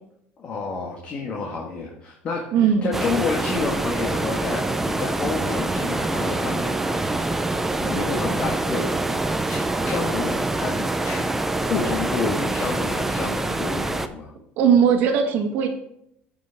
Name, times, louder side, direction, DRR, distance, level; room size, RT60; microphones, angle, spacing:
voice 1, 0.4-7.1 7.8-8.9 9.4-11.2 11.7-14.3, left 4 dB, 35° left, -2 dB, 1.5 m, -29 dB
voice 2, 2.5-3.0 14.6-15.7, right 7 dB, 60° right, 4 dB, 1.6 m, -19 dB
sound 1, 2.9-14.1, right 2 dB, 10° right, 0.5 m, -25 dB
15.0 x 5.4 x 3.5 m, 0.75 s
cardioid pair, 140°, 4 cm